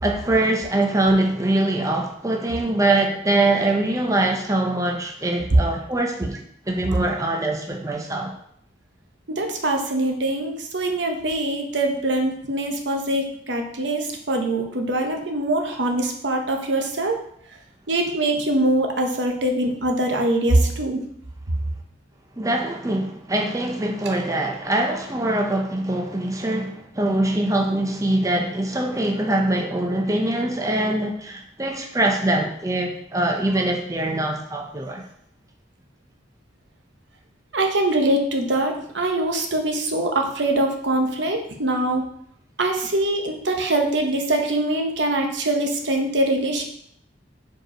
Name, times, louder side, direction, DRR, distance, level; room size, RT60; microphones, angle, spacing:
voice 1, 0.0-6.4 6.7-8.3 22.4-35.0, right 1 dB, 20° right, 2 dB, 0.7 m, -23 dB
voice 2, 9.3-17.2 17.9-21.0 37.5-42.0 42.6-46.6, right 1 dB, 70° right, 3 dB, 1.1 m, -23 dB
5.1 x 4.7 x 5.0 m, 0.69 s
head